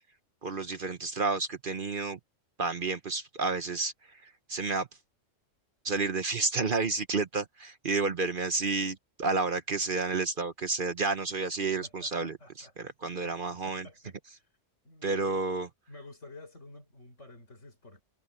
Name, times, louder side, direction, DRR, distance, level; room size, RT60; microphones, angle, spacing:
voice 1, 0.4-2.2 2.6-3.9 4.5-4.9 5.8-13.9 15.0-15.7, right 3 dB, 45° right, 1.1 m, -30 dB
voice 2, 11.8-13.3 13.7-14.1 14.8-15.5 15.9-18.0, left 2 dB, 70° left, 5.9 m, -50 dB
omnidirectional pair, 1.3 m